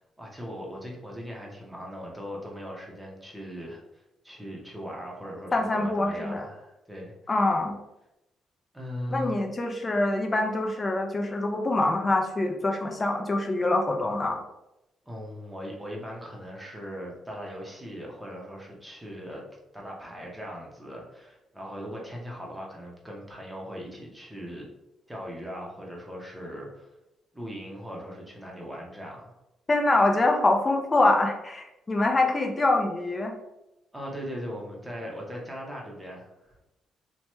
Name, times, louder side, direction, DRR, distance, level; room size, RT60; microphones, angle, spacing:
voice 1, 0.0-7.1 8.7-9.4 15.0-19.5 19.7-24.7 25.1-26.9 27.3-29.3 33.9-36.5, equal, 5° right, -2 dB, 0.8 m, -39 dB
voice 2, 5.5-6.5 7.3-7.7 9.1-14.4 29.7-33.3, left 2 dB, 25° left, 3 dB, 0.5 m, -25 dB
2.9 x 2.2 x 2.9 m, 0.91 s
cardioid pair, 90°, 0 cm